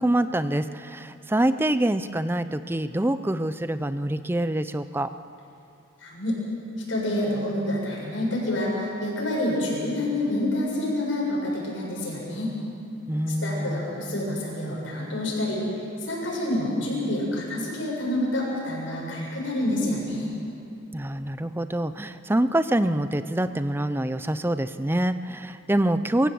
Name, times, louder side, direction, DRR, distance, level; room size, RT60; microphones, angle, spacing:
voice 1, 0.0-5.1 13.1-13.9 20.9-26.3, right 1 dB, 10° right, 12 dB, 0.5 m, -25 dB
voice 2, 6.0-6.4 6.9-12.5 13.4-20.3, left 1 dB, 75° left, -3 dB, 7.4 m, -28 dB
24.0 x 15.5 x 7.7 m, 2.7 s
head